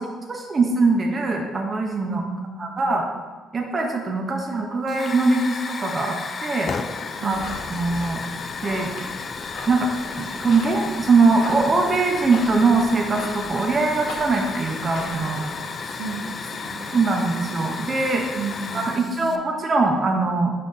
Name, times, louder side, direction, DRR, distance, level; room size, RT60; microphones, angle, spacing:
voice 1, 0.0-2.2 2.6-3.0 3.5-6.1 6.4-6.7 7.2-7.4 7.7-8.2 8.6-8.9 9.7-9.9 10.2-15.4 16.9-18.3 18.7-20.5, right 3 dB, 40° right, 1 dB, 0.8 m, -22 dB
voice 2, 2.0-3.1 7.2-7.5 15.2-16.8 18.3-19.4, right 5 dB, 75° right, -8 dB, 1.4 m, -34 dB
Hiss / Fire, 4.9-19.4, left 4 dB, 45° left, 0.5 m, -33 dB
sound 1, 7.3-15.5, left 2 dB, 65° left, 1.5 m, -39 dB
4.8 x 4.1 x 5.4 m, 1.3 s
supercardioid pair, 60°, 0 cm